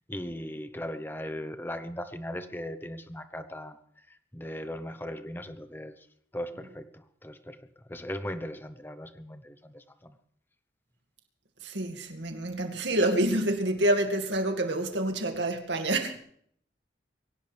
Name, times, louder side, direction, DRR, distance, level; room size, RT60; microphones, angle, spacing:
voice 1, 0.1-3.8 4.3-6.0 6.3-7.6 7.9-10.1, left 1 dB, 10° left, 9 dB, 1.1 m, -38 dB
voice 2, 11.6-16.2, right 1 dB, 80° right, 5 dB, 2.3 m, -27 dB
23.0 x 17.0 x 3.5 m, 0.65 s
head